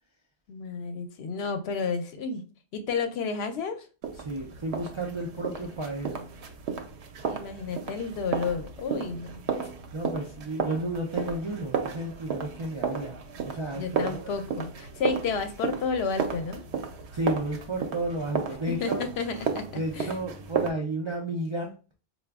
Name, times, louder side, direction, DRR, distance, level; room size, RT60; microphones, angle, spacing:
voice 1, 0.5-2.4 2.7-3.9 7.3-9.4 13.7-16.6 18.7-19.7 19.9-20.1, left 5 dB, 75° left, 7 dB, 0.8 m, -31 dB
sound 1, 4.0-20.7, right 6 dB, 85° right, 0.8 m, -34 dB
voice 2, 4.2-6.2 9.9-13.1 13.4-14.2 17.1-19.0 19.7-21.7, right 1 dB, 50° right, 0 dB, 0.3 m, -32 dB
4.8 x 2.2 x 2.3 m, 0.34 s
omnidirectional pair, 1.1 m